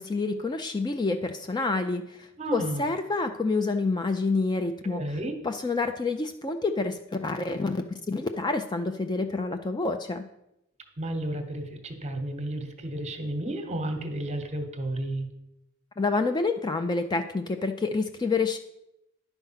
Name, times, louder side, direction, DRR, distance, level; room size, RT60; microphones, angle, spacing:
voice 1, 0.0-5.2 5.4-10.3 16.0-18.6, left 3 dB, 20° left, 7 dB, 0.4 m, -28 dB
voice 2, 2.4-2.9 4.8-5.4 11.0-15.3, right 1 dB, 30° right, 6 dB, 1.0 m, -32 dB
10.5 x 4.5 x 5.7 m, 0.86 s
head